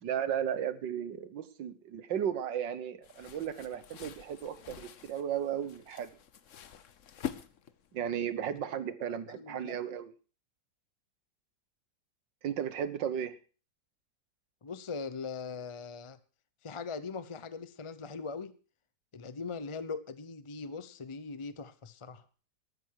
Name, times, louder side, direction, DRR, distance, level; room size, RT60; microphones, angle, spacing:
voice 1, 0.0-6.1 7.9-10.1 12.4-13.3, right 9 dB, 85° right, 1.8 m, -35 dB
sound 1, 3.0-8.0, left 9 dB, 50° left, 1.1 m, -45 dB
voice 2, 9.1-9.8 14.6-16.2 16.6-18.5 19.1-22.2, left 4 dB, 35° left, 0.4 m, -41 dB
13.5 x 13.0 x 4.7 m
omnidirectional pair, 1.9 m